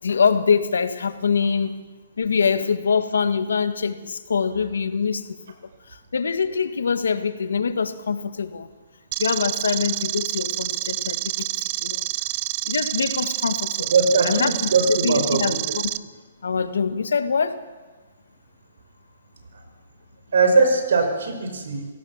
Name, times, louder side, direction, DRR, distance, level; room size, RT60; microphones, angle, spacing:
voice 1, 0.0-1.8 2.2-5.3 5.9-8.7 9.2-12.0 12.6-13.9 14.2-15.9 16.4-17.6, left 5 dB, 90° left, 10 dB, 1.7 m, -24 dB
sound 1, 9.1-16.0, right 17 dB, 35° right, 0.6 m, -28 dB
voice 2, 13.9-15.8 19.5-19.6 20.3-21.9, right 4 dB, 75° right, 6 dB, 5.5 m, -20 dB
28.0 x 17.5 x 7.3 m, 1.3 s
hypercardioid pair, 155°, 0 cm